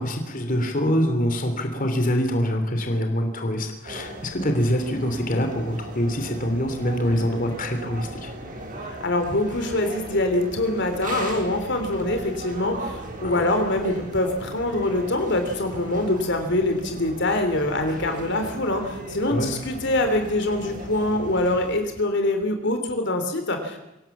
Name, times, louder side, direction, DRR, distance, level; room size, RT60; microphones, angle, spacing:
voice 1, 0.0-8.3 13.2-13.4 19.3-19.6, equal, 45° left, 5 dB, 3.2 m, -25 dB
sound 1, 3.8-21.8, right 1 dB, 45° right, 7.6 m, -38 dB
voice 2, 9.0-23.8, left 1 dB, 65° left, 6 dB, 3.2 m, -24 dB
25.5 x 17.5 x 7.3 m, 0.92 s
head